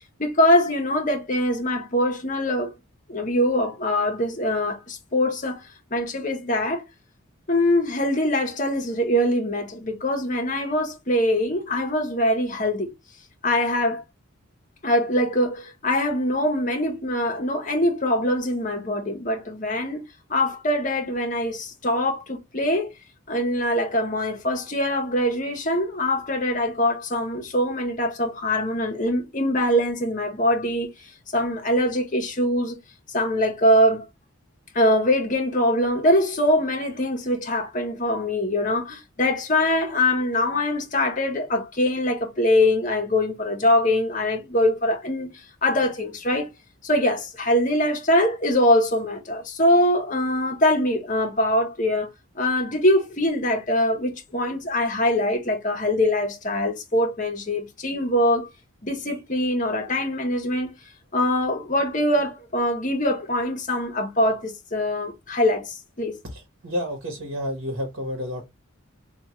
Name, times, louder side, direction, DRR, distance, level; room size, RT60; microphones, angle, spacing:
voice 1, 0.2-2.7 3.1-5.6 5.9-6.8 7.5-12.9 13.4-14.0 14.8-20.0 20.3-22.9 23.3-30.9 31.3-32.8 33.1-34.0 34.7-45.3 45.6-46.5 46.8-52.1 52.3-58.5 58.8-60.7 61.1-66.2, left 1 dB, 35° left, 0.9 m, -23 dB
voice 2, 66.3-68.4, equal, 60° right, 1.1 m, -30 dB
3.5 x 2.4 x 3.0 m
head